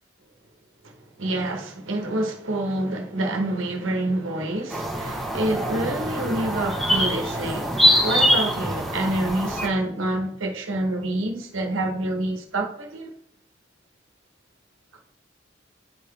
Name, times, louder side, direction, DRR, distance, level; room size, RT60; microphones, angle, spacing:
voice 1, 0.8-7.7 8.0-13.1, right 1 dB, 85° right, 1.1 m, -27 dB
sound 1, 4.7-9.7, equal, ahead, 1.0 m, -23 dB
10.5 x 4.1 x 3.2 m
head